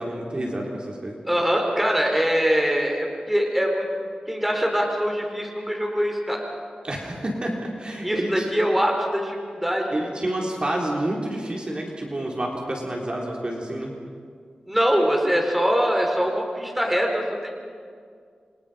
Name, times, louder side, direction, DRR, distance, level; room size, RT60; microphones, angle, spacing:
voice 1, 0.0-1.2 6.8-8.5 9.9-13.9, right 1 dB, 35° right, -1 dB, 3.9 m, -29 dB
voice 2, 1.3-3.8 4.3-6.4 8.0-10.0 14.7-17.2, equal, 5° right, 1 dB, 4.2 m, -23 dB
29.0 x 25.5 x 5.2 m, 2.1 s
wide cardioid pair, 95°, 3 cm